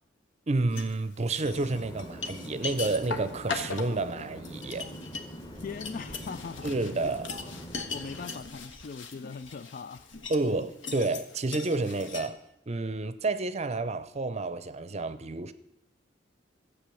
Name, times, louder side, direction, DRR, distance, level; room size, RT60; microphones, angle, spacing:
voice 1, 0.5-4.9 6.6-7.3 10.3-15.5, right 2 dB, 35° right, 0.6 m, -30 dB
sound 1, 0.7-0.9 1.4-12.3, left 4 dB, 70° left, 1.3 m, -39 dB
sound 2, 1.4-8.4, equal, 25° left, 1.4 m, -44 dB
voice 2, 5.6-6.7 7.3-7.6 7.9-10.1, left 5 dB, 45° left, 0.4 m, -40 dB
13.5 x 8.3 x 6.9 m
head